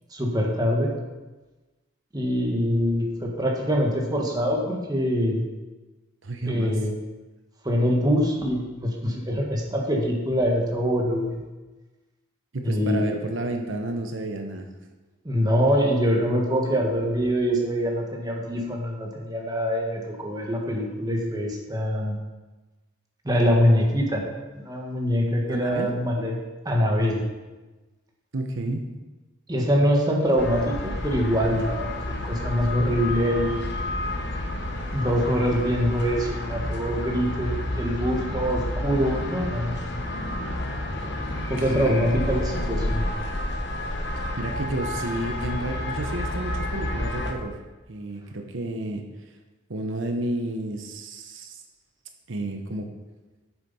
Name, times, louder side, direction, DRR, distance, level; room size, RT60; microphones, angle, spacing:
voice 1, 0.1-0.9 2.1-5.4 6.4-6.9 7.6-11.4 12.6-13.3 15.2-22.1 23.2-24.2 24.5-26.4 26.6-27.2 29.5-33.6 34.9-39.8 41.5-43.0, equal, 20° right, 0 dB, 1.5 m, -24 dB
voice 2, 6.2-6.7 12.5-14.7 25.5-25.9 28.3-28.9 41.7-42.1 44.4-47.6 47.9-49.0 49.7-51.6 52.3-52.9, right 1 dB, 70° right, 4 dB, 0.9 m, -31 dB
sound 1, 30.4-47.3, left 1 dB, 60° left, 1.1 m, -30 dB
8.2 x 7.1 x 5.5 m, 1.2 s
head